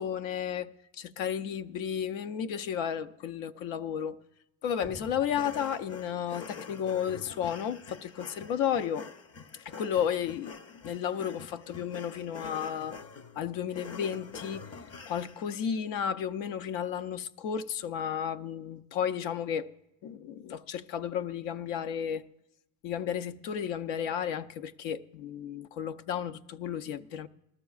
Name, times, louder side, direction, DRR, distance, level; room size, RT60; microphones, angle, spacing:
voice 1, 0.0-4.2 4.6-9.1 9.7-13.0 13.4-14.7 15.1-19.7 20.0-22.3 22.8-27.3, left 8 dB, 80° left, 0.6 m, -33 dB
sound 1, 4.8-7.6 7.9-8.0, right 4 dB, 15° right, 0.4 m, -52 dB
sound 2, 5.3-15.5, left 5 dB, 35° left, 0.6 m, -46 dB
19.5 x 12.5 x 2.4 m
supercardioid pair, 75°, 44 cm